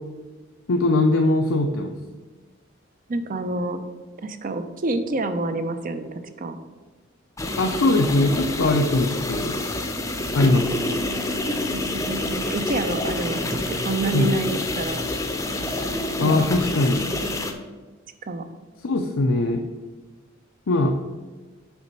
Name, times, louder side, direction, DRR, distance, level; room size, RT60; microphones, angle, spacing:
voice 1, 0.7-1.9 7.6-9.6 10.3-10.7 14.1-14.3 16.2-17.1 18.8-19.6 20.7-21.0, left 2 dB, 90° left, 3 dB, 0.6 m, -21 dB
voice 2, 3.1-3.8 4.2-6.6 11.7-15.1 16.2-16.4 18.2-18.4, right 2 dB, 45° right, 10 dB, 0.6 m, -28 dB
sound 1, 7.4-17.5, left 2 dB, 15° left, 0.6 m, -27 dB
7.0 x 5.2 x 5.3 m, 1.3 s
head